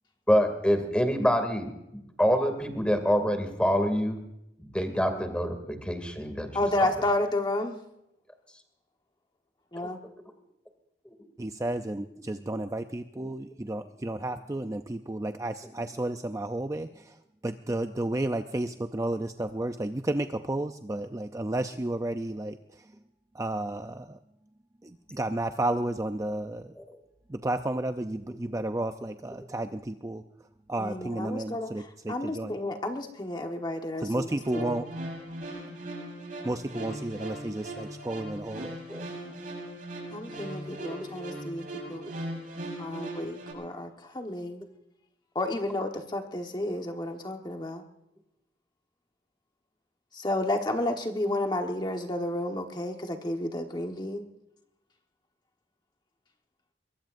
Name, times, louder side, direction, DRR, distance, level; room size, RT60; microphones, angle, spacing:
voice 1, 0.3-1.7 2.2-4.2 4.6-6.5 10.0-10.1 13.2-13.3 26.4-26.5 26.8-27.0 38.9-39.1 41.0-41.4, equal, 5° left, 6 dB, 2.5 m, -26 dB
voice 2, 6.5-7.8 9.7-10.0 30.8-34.8 40.1-42.0 42.8-44.6 45.3-47.8 50.1-54.2, left 1 dB, 25° left, 3 dB, 1.3 m, -31 dB
voice 3, 11.4-17.1 17.4-22.6 23.3-24.2 24.8-26.7 27.3-30.2 30.7-32.5 34.0-34.8 36.4-38.8, right 1 dB, 20° right, 7 dB, 0.5 m, -32 dB
sound 1, 34.3-43.5, right 1 dB, 50° right, 6.9 m, -39 dB
23.0 x 22.5 x 2.6 m, 0.84 s
head